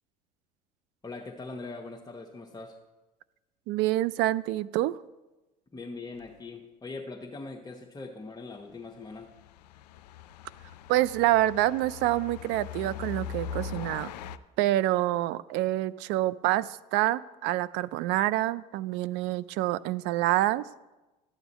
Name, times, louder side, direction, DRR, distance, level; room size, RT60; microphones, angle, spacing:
voice 1, 1.0-2.8 5.7-9.4, left 3 dB, 20° left, -1 dB, 0.9 m, -41 dB
voice 2, 3.7-5.0 10.9-14.1 14.6-20.6, right 16 dB, 60° right, 18 dB, 0.4 m, -27 dB
sound 1, 6.2-6.3 8.9-14.4, left 7 dB, 85° left, 0.4 m, -40 dB
12.0 x 7.1 x 4.1 m, 1.1 s
hypercardioid pair, 70°, 21 cm